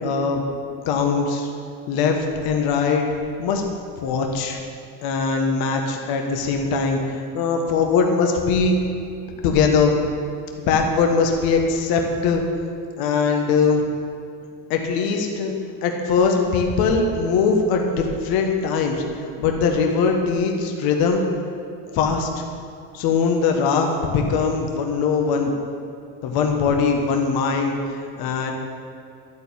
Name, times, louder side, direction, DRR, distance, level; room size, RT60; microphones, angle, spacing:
voice 1, 0.0-0.4 0.8-1.5 1.9-3.0 3.4-3.6 4.0-4.6 5.0-8.7 9.4-10.0 10.6-12.4 13.0-13.8 14.7-15.5 15.8-19.0 19.4-21.2 21.9-22.3 22.9-25.5 26.2-27.7 28.2-28.5, left 5 dB, 65° left, 2 dB, 1.4 m, -21 dB
12.0 x 4.3 x 7.1 m, 2.5 s
supercardioid pair, 105°, 40 cm